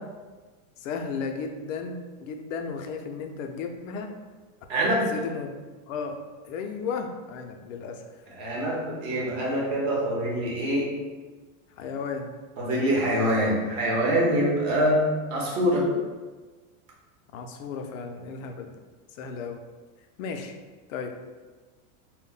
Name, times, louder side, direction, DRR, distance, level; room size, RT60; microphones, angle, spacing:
voice 1, 0.8-4.1 5.1-5.5 5.9-8.3 11.8-12.3 17.3-18.7 19.1-19.6 20.2-20.5 20.9-21.1, left 5 dB, 70° left, 5 dB, 0.5 m, -34 dB
voice 2, 4.7-5.1 8.4-11.0 12.6-15.9, equal, 40° right, -4 dB, 0.8 m, -25 dB
2.2 x 2.1 x 3.8 m, 1.3 s
supercardioid pair, 155°, 42 cm